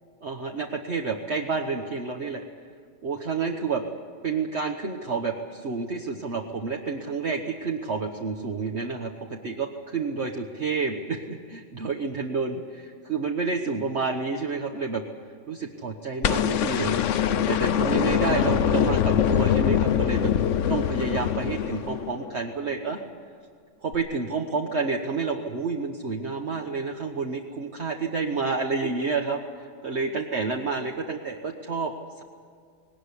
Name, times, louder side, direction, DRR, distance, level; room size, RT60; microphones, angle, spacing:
voice 1, 0.2-2.4 3.0-3.8 4.2-15.0 15.5-17.0 17.5-20.3 20.7-23.0 23.8-31.9, right 4 dB, 50° right, 2 dB, 1.4 m, -29 dB
sound 1, 16.2-22.4 23.9-24.0, left 9 dB, 60° left, 1.0 m, -23 dB
19.0 x 19.0 x 9.8 m, 2.1 s
omnidirectional pair, 1.5 m